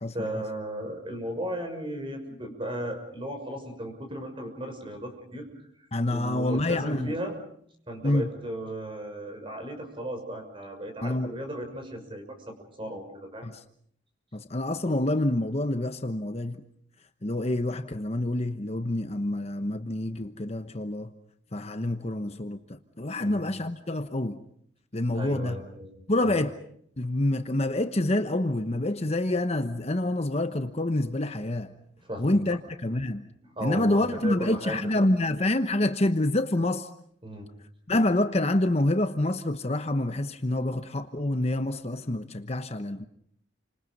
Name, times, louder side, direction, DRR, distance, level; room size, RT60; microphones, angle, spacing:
voice 1, 0.1-5.5 6.1-7.4 7.9-13.5 23.2-23.4 25.1-25.9 26.2-26.4 32.0-32.3 33.4-35.1 37.2-37.5, equal, 30° right, 6.3 m, -36 dB
voice 2, 5.9-7.1 8.0-8.3 11.0-11.3 13.4-13.6 14.3-16.6 17.2-21.1 21.5-24.4 24.9-25.6 26.1-26.6 27.0-31.7 32.2-33.3 33.6-36.9 37.9-43.1, left 1 dB, 35° left, 1.0 m, -27 dB
29.5 x 26.0 x 5.4 m
head